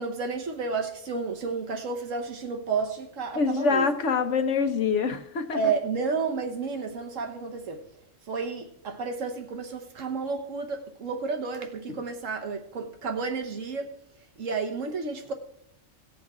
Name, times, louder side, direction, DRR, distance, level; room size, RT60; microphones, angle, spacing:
voice 1, 0.0-3.9 5.5-7.8 8.3-13.9 14.4-15.3, right 4 dB, 85° right, 1.5 m, -31 dB
voice 2, 3.3-5.6 11.9-12.0, left 5 dB, 70° left, 1.1 m, -25 dB
18.0 x 7.1 x 3.6 m
omnidirectional pair, 1.3 m